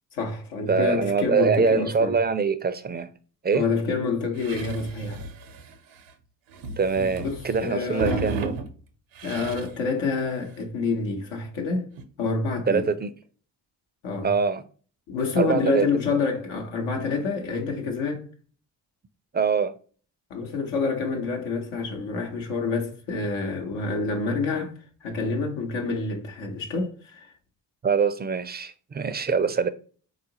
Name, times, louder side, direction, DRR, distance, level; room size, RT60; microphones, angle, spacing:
voice 1, 0.1-2.1 3.5-5.2 7.2-8.3 9.2-11.9 12.2-12.9 14.0-14.3 15.1-18.2 20.3-24.7 25.0-27.3, left 4 dB, 85° left, 0.9 m, -27 dB
voice 2, 0.7-3.1 3.4-3.6 6.8-8.5 12.7-13.1 14.2-14.6 15.4-15.9 19.3-19.7 27.8-29.7, right 5 dB, 25° right, 0.4 m, -24 dB
sound 1, 4.4-6.1 6.5-8.7 9.1-9.8 10.2-10.3 10.6-10.7 12.0-12.1, right 4 dB, 80° right, 0.7 m, -33 dB
3.8 x 2.4 x 2.7 m
hypercardioid pair, 40°, 47 cm